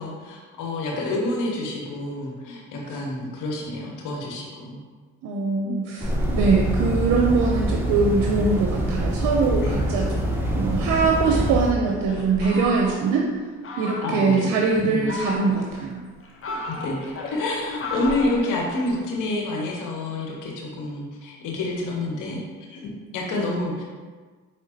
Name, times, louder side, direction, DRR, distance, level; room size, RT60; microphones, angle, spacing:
voice 1, 0.0-4.8 5.6-5.9 9.6-10.0 14.0-15.2 16.5-23.8, left 2 dB, 80° left, -1 dB, 0.9 m, -28 dB
voice 2, 5.2-10.1 10.5-13.3 13.8-16.0, right 4 dB, 80° right, 0 dB, 0.6 m, -22 dB
sound 1, 6.0-11.7, right 1 dB, 5° right, 0.9 m, -25 dB
Fowl, 11.1-13.2 13.6-14.3 14.8-15.8 16.2-19.0, left 2 dB, 45° left, 0.8 m, -35 dB
4.9 x 3.3 x 2.8 m, 1.4 s
supercardioid pair, 60°, 31 cm